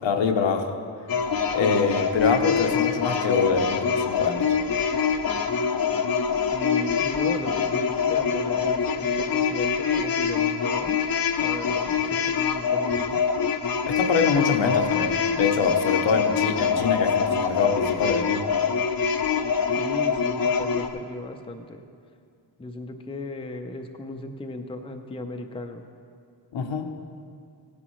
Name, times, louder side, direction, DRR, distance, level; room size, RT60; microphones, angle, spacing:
voice 1, 0.0-0.8 1.5-4.5 13.9-18.5 26.5-26.9, left 5 dB, 75° left, 5 dB, 0.9 m, -25 dB
sound 1, 1.1-20.9, left 6 dB, 50° left, 0.7 m, -25 dB
voice 2, 6.5-11.0 11.4-13.2 19.8-21.8 22.6-25.8, left 2 dB, 10° left, 5 dB, 0.5 m, -36 dB
16.0 x 9.8 x 3.1 m, 2.3 s
wide cardioid pair, 115°, 45 cm